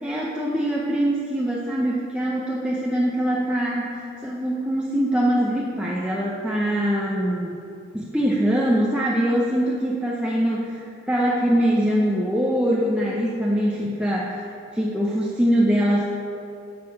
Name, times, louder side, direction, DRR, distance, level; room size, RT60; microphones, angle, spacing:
voice 1, 0.0-7.6 7.9-14.5 14.7-16.1, equal, 5° right, -4 dB, 0.7 m, -23 dB
10.5 x 6.9 x 5.3 m, 2.7 s
head